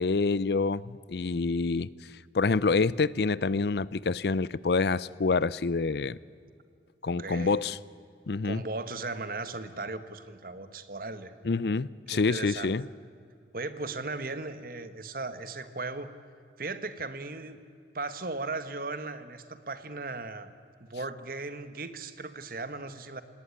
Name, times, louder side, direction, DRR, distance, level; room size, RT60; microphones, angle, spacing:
voice 1, 0.0-1.9 2.3-6.2 7.0-7.8 8.3-8.6 11.4-12.9, left 4 dB, 65° left, 20 dB, 0.5 m, -27 dB
voice 2, 7.0-7.6 8.4-11.3 12.1-12.8 13.5-16.1 16.6-17.6 17.9-20.5 20.8-23.2, right 3 dB, 50° right, 11 dB, 1.5 m, -37 dB
26.5 x 19.0 x 9.9 m, 2.3 s
head